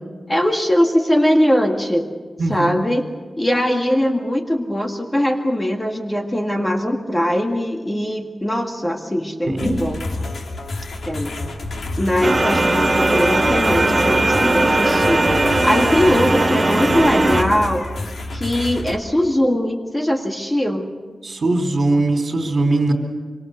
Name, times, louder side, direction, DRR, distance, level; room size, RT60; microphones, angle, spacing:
voice 1, 0.3-2.1 2.5-3.1 3.4-10.0 11.0-11.3 12.0-17.9 18.3-20.9, equal, 15° left, 3 dB, 2.0 m, -20 dB
voice 2, 2.4-2.8 9.5-9.8 21.2-22.9, right 2 dB, 55° right, 4 dB, 4.0 m, -20 dB
sound 1, 9.6-19.0, left 2 dB, 85° left, 2.6 m, -29 dB
sound 2, 12.2-17.4, right 2 dB, 20° right, 1.7 m, -18 dB
25.5 x 25.0 x 6.8 m, 1.4 s
wide cardioid pair, 115°, 0 cm